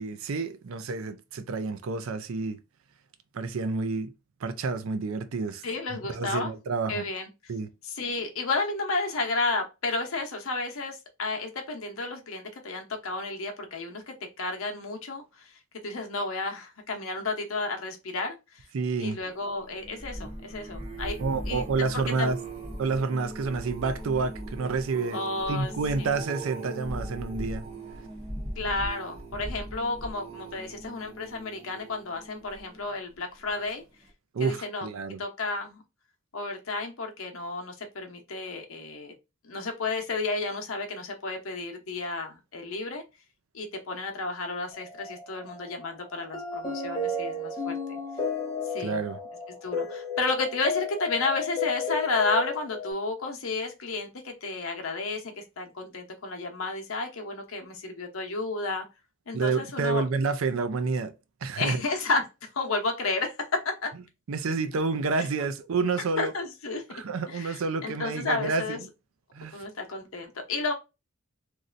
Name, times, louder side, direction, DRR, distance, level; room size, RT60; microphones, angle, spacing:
voice 1, 0.0-2.6 3.3-4.1 4.4-5.6 6.1-7.1 7.5-7.7 18.7-19.2 21.2-22.4 22.8-25.2 25.5-27.6 34.3-35.2 48.8-49.2 59.3-61.1 61.4-61.8 64.3-66.3 66.9-68.8 69.3-69.6, right 4 dB, 75° right, 0.4 m, -29 dB
voice 2, 5.6-6.5 6.9-7.3 7.8-15.5 15.8-18.6 19.0-21.2 21.5-21.7 21.9-22.3 25.1-25.7 26.0-26.1 28.6-33.8 34.4-34.9 35.2-35.8 36.3-39.1 39.4-43.0 43.5-48.0 48.7-49.0 49.6-58.9 59.3-60.1 61.5-62.3 62.5-63.9 66.2-67.0 67.3-68.8 69.5-70.7, left 3 dB, 75° left, 0.8 m, -32 dB
sound 1, 19.6-33.0 33.5-33.8 34.1-34.2, right 1 dB, 30° right, 1.1 m, -39 dB
sound 2, 44.7-52.9, left 4 dB, 20° left, 1.1 m, -33 dB
3.1 x 2.6 x 2.5 m
head